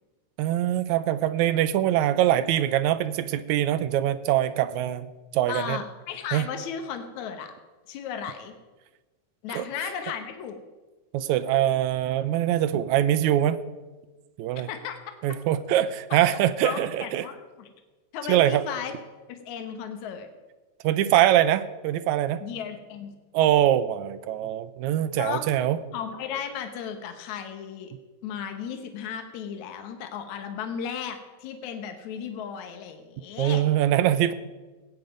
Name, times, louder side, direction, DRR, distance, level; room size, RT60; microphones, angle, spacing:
voice 1, 0.4-5.1 5.3-5.8 6.3-6.5 9.5-9.6 11.1-13.6 14.4-14.7 15.2-17.2 18.3-18.6 20.8-22.4 23.3-25.8 33.4-34.3, right 12 dB, 85° right, 13 dB, 2.0 m, -23 dB
voice 2, 5.5-7.5 7.9-8.5 9.4-10.6 14.7-15.0 16.1-16.2 16.6-17.7 18.1-18.9 19.3-20.3 22.4-23.2 25.2-25.7 25.9-27.9 28.2-33.6, left 8 dB, 75° left, 6 dB, 2.4 m, -35 dB
18.0 x 9.3 x 5.2 m, 1.2 s
omnidirectional pair, 3.4 m